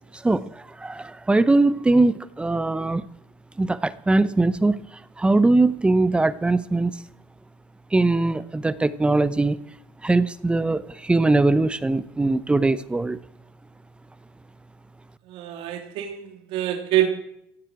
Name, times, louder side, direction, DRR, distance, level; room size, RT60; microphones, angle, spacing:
voice 1, 0.1-3.1 3.6-4.8 5.2-7.0 7.9-9.6 10.0-13.2, right 2 dB, 10° right, 16 dB, 0.7 m, -21 dB
voice 2, 15.3-17.1, right 12 dB, 70° right, 4 dB, 2.9 m, -25 dB
16.0 x 7.9 x 8.9 m, 0.74 s
cardioid pair, 125°, 9 cm